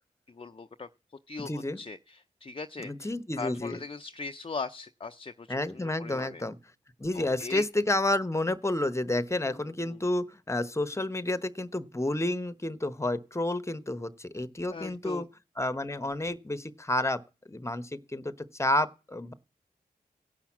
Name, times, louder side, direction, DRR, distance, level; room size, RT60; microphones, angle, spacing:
voice 1, 0.3-0.9 1.3-6.4 7.1-7.7 9.4-10.0 14.7-15.3, left 4 dB, 35° left, 0.6 m, -40 dB
voice 2, 1.4-1.8 2.8-3.8 5.5-6.6 7.0-15.2 15.6-17.2 17.5-19.3, left 1 dB, 15° left, 1.0 m, -30 dB
16.5 x 5.8 x 7.3 m
cardioid pair, 45°, 17 cm